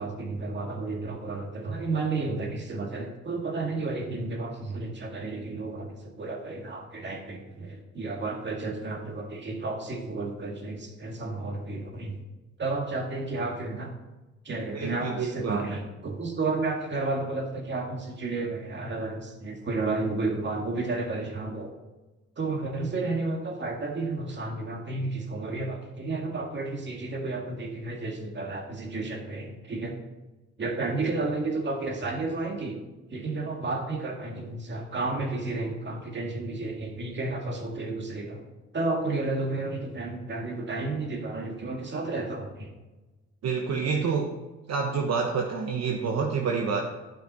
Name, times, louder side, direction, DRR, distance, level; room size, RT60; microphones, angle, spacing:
voice 1, 0.0-12.2 12.6-13.9 14.4-21.8 22.4-29.9 30.6-32.8 33.1-38.4 38.7-42.7, right 3 dB, 35° right, 2 dB, 2.0 m, -32 dB
voice 2, 14.7-15.6 43.4-44.3 44.7-46.8, right 5 dB, 60° right, 1 dB, 1.1 m, -28 dB
12.0 x 5.8 x 4.3 m, 1.1 s
cardioid pair, 90°, 30 cm